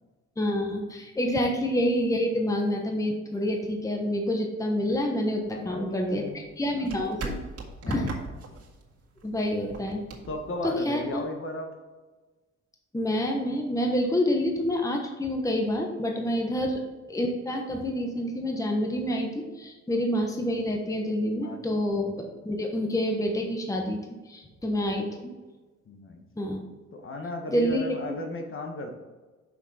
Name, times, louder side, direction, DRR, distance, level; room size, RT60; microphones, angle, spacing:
voice 1, 0.4-6.2 6.6-7.4 7.9-8.1 9.2-10.0 10.6-11.2 12.9-16.8 17.1-24.0 24.3-25.3 26.4-26.6 27.5-28.0, equal, 10° left, 2 dB, 1.1 m, -27 dB
sound 1, 5.4-11.3, right 3 dB, 55° right, 1.9 m, -41 dB
voice 2, 5.5-6.4 6.7-6.9 7.8-8.1 10.3-11.7 16.6-16.7 21.4-21.6 25.1-25.2 25.9-26.2 26.9-28.9, left 2 dB, 45° left, 3 dB, 1.4 m, -35 dB
6.3 x 5.9 x 4.3 m, 1.3 s
cardioid pair, 90°, 30 cm